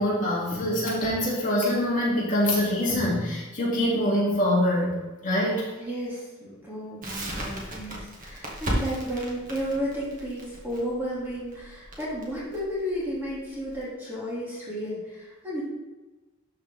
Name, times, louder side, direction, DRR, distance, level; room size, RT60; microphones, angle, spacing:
voice 1, 0.0-5.0 5.2-5.7, left 1 dB, 35° left, -7 dB, 2.9 m, -24 dB
voice 2, 5.8-15.6, equal, 10° right, -8 dB, 2.6 m, -33 dB
Crackle, 7.0-13.8, equal, 40° right, 1.7 m, -35 dB
12.5 x 4.7 x 3.6 m, 1.2 s
head